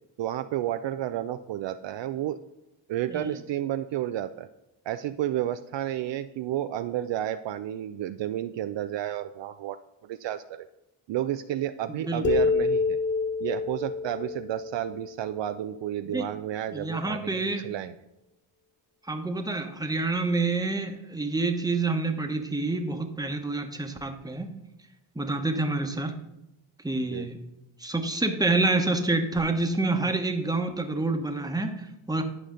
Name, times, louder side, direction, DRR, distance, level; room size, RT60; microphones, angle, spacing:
voice 1, 0.2-2.4 2.9-4.5 4.9-10.7 11.1-13.0 13.4-17.9 27.1-27.3, right 12 dB, 60° right, 9 dB, 0.5 m, -31 dB
voice 2, 11.9-12.2 16.1-16.2 16.7-17.6 19.0-24.5 25.1-26.2 26.8-27.4 27.8-32.2, right 3 dB, 10° right, 5 dB, 1.0 m, -28 dB
sound 1, 12.2-15.8, left 4 dB, 25° left, 0.4 m, -27 dB
10.5 x 4.9 x 3.8 m, 0.87 s
cardioid pair, 65°, 50 cm